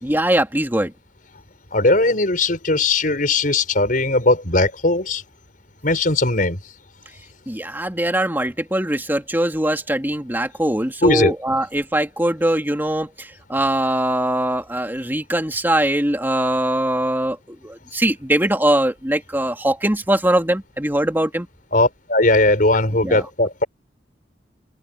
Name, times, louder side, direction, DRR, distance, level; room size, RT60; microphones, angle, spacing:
voice 1, 0.0-0.9 7.5-21.5 23.0-23.3, right 1 dB, 10° right, 2.5 m, -21 dB
voice 2, 1.7-5.2 5.8-6.6 11.0-11.3 21.7-23.6, left 2 dB, 50° left, 5.4 m, -18 dB
open air
head